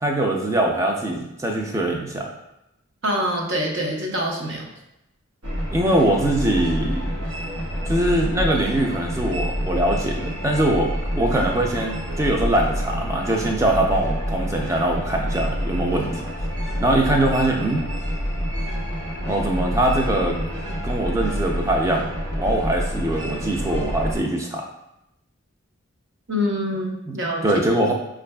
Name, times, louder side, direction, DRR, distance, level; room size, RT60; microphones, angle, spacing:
voice 1, 0.0-2.3 5.7-7.0 7.8-16.2 16.8-17.8 19.3-20.4 20.8-22.1 22.3-24.7 27.4-27.9, right 1 dB, 15° right, 1 dB, 0.4 m, -22 dB
voice 2, 3.0-4.7 26.3-27.5, equal, 55° right, 0 dB, 0.6 m, -25 dB
sound 1, 5.4-24.2, equal, 90° right, 0.8 m, -27 dB
5.3 x 2.4 x 2.2 m, 0.88 s
head